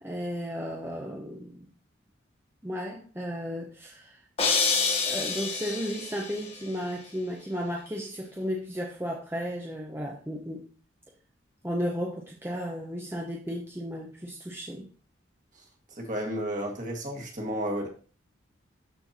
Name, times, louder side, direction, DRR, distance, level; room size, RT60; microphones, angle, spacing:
voice 1, 0.0-1.6 2.6-4.2 5.1-10.6 11.6-14.9, equal, 10° right, 0.8 m, -34 dB
sound 1, 4.4-6.5, left 4 dB, 30° left, 1.1 m, -27 dB
voice 2, 16.0-17.9, equal, 40° right, 1.8 m, -32 dB
12.5 x 4.5 x 2.8 m
head